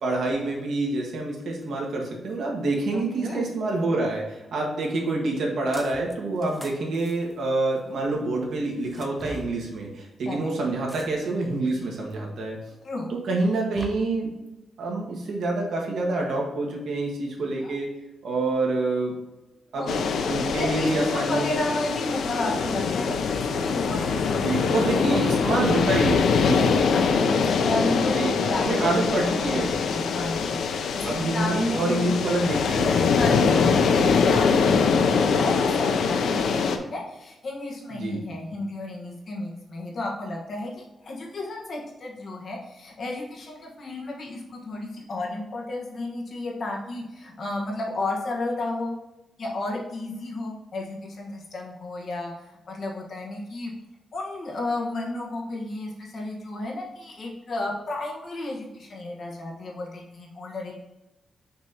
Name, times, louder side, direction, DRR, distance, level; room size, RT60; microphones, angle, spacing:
voice 1, 0.0-12.6 13.1-14.3 14.8-17.9 18.2-19.1 19.7-21.5 23.7-23.8 24.4-26.7 28.1-29.8 31.0-33.1 37.9-38.2, right 2 dB, 70° right, -1 dB, 1.6 m, -27 dB
voice 2, 2.9-3.4 10.3-10.4 12.8-13.1 17.6-17.7 19.7-19.9 20.2-25.2 26.7-28.9 29.2-32.1 33.2-40.7 41.0-48.9 49.4-52.3 52.7-53.7 54.1-60.7, left 2 dB, 45° left, -2 dB, 1.4 m, -32 dB
sound 1, 5.7-6.2 6.4-8.0 8.8-9.5 10.9-11.4 12.1-12.2 13.3-13.9, left 1 dB, 5° left, 0.6 m, -42 dB
sound 2, 19.9-36.8, left 5 dB, 75° left, 0.6 m, -23 dB
6.0 x 3.1 x 5.7 m, 1.0 s
wide cardioid pair, 175°, 0 cm